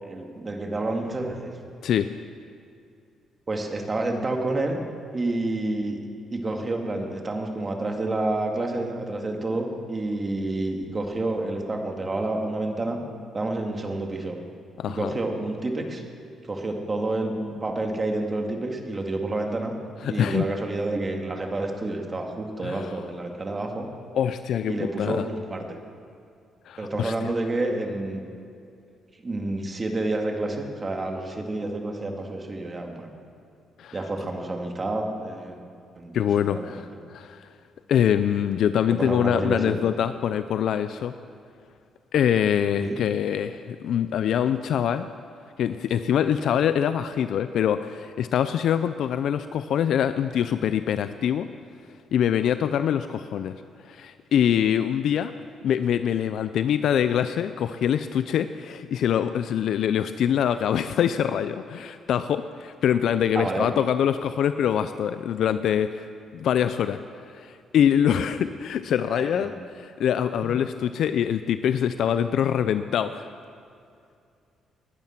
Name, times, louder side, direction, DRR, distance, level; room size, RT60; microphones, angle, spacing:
voice 1, 0.0-1.5 3.5-4.8 5.1-6.0 6.3-13.0 13.3-14.4 14.9-16.0 16.5-19.8 20.0-23.9 24.7-25.8 26.8-28.3 29.2-33.1 33.9-35.6 36.0-37.0 38.9-39.8 42.8-43.0 63.4-63.7 69.1-69.5, right 2 dB, 30° right, 3 dB, 2.2 m, -29 dB
voice 2, 14.8-15.1 20.0-20.4 22.6-22.9 24.1-25.2 26.7-27.1 33.8-34.0 36.1-37.5 37.9-41.1 42.1-45.1 45.6-51.5 52.1-53.6 53.8-55.3 55.6-66.1 66.3-67.0 67.3-73.3, left 9 dB, 70° left, 11 dB, 0.5 m, -24 dB
20.0 x 11.0 x 5.9 m, 2.4 s
cardioid pair, 90°, 0 cm